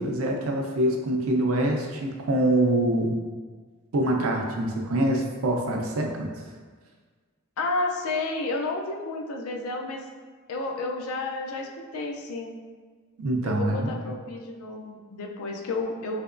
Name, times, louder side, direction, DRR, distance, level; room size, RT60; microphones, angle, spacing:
voice 1, 0.0-3.2 3.9-6.3 13.2-13.9, right 1 dB, 75° right, 1 dB, 0.5 m, -25 dB
voice 2, 7.6-10.1 10.5-12.5 13.4-16.2, left 3 dB, 90° left, 2 dB, 0.4 m, -31 dB
3.3 x 2.9 x 2.5 m, 1.5 s
head